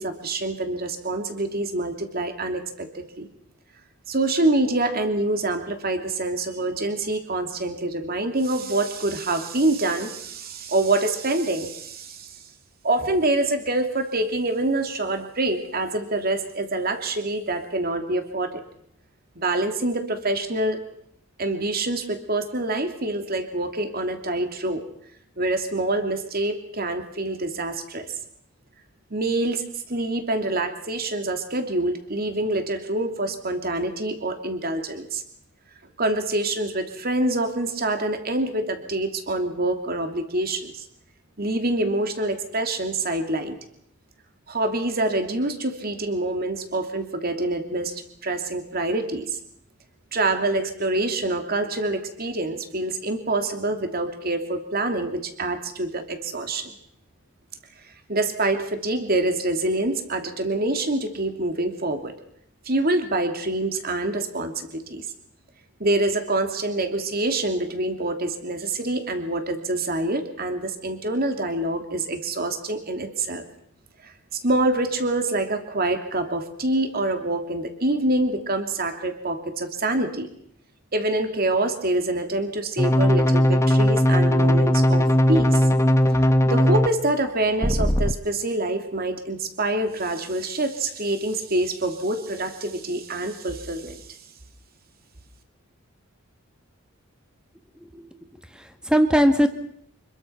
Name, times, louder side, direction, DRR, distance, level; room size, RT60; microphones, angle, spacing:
voice 1, 0.0-3.3 4.1-12.4 12.8-18.6 19.4-20.8 21.4-24.8 25.4-28.1 29.1-29.6 29.9-35.2 36.0-40.8 41.4-43.6 44.5-49.4 50.1-56.7 58.1-62.1 62.6-65.1 65.8-73.4 74.0-80.3 80.9-85.7 86.1-94.0, right 2 dB, 45° right, 6 dB, 2.9 m, -26 dB
sound 1, 82.8-86.9 87.6-88.1, equal, 15° left, 1.1 m, -18 dB
voice 2, 97.8-98.1 98.5-99.5, equal, 5° right, 7 dB, 1.9 m, -20 dB
26.0 x 22.0 x 5.9 m, 0.69 s
head